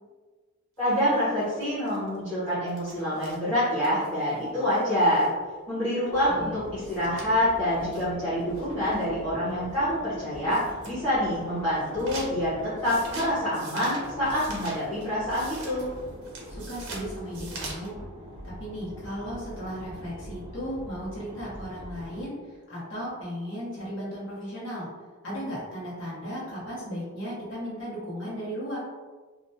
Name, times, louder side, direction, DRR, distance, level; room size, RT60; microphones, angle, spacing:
voice 1, 0.8-5.3 5.7-15.9, equal, 10° left, -13 dB, 0.7 m, -26 dB
sound 1, 0.9-5.4 5.7-5.8 6.0-6.1 6.5-6.6 6.8-9.1 9.7-9.8 10.4-10.9 11.3-17.9, right 3 dB, 85° right, 0.7 m, -44 dB
sound 2, 6.1-22.2, equal, 20° right, 0.4 m, -43 dB
voice 2, 6.2-6.5 16.5-18.0 18.4-22.4 22.7-24.9 25.2-28.8, equal, 55° left, -8 dB, 1.0 m, -36 dB
2.4 x 2.1 x 2.7 m, 1.4 s
head